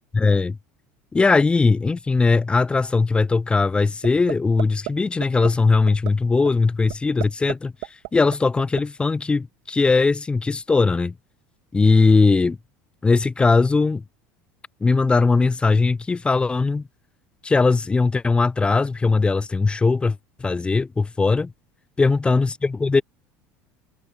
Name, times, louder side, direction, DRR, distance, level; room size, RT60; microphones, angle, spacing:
voice 1, 0.1-0.6 1.1-7.7 8.1-11.1 11.7-12.6 13.0-14.0 14.8-16.8 17.4-21.5 22.0-23.0, left 4 dB, 15° left, 0.3 m, -19 dB
sound 1, 4.0-4.3 4.6-4.9 5.2-5.5 5.9-6.1 6.4-6.5 6.9-7.5 7.8-8.8, right 23 dB, 75° right, 2.5 m, -30 dB
supercardioid pair, 100°, 7 cm